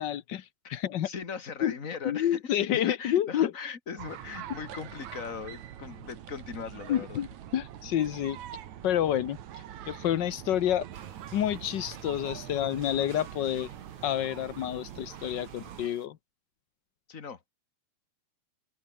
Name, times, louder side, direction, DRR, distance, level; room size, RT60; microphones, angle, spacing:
voice 1, 0.0-1.1 1.6-1.7 2.0-3.5 6.9-7.3 7.5-8.4 8.8-9.4 9.8-10.8 11.3-13.7 14.0-16.2, left 11 dB, 85° left, 0.9 m, -28 dB
voice 2, 1.0-7.2 17.1-17.5, left 6 dB, 30° left, 1.9 m, -39 dB
sound 1, 4.0-15.9, right 11 dB, 75° right, 2.8 m, -44 dB
sound 2, 10.9-16.1, right 6 dB, 45° right, 3.2 m, -53 dB
open air
omnidirectional pair, 3.4 m